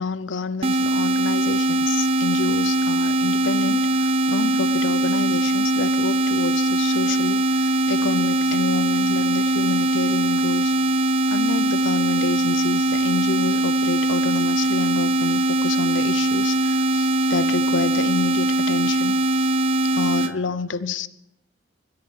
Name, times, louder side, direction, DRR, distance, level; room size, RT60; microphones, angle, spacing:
voice 1, 0.0-10.7 11.3-19.5 19.9-21.1, left 4 dB, 85° left, 0.7 m, -29 dB
sound 1, 0.6-20.3, right 1 dB, 30° right, 0.5 m, -21 dB
21.0 x 13.5 x 4.8 m
head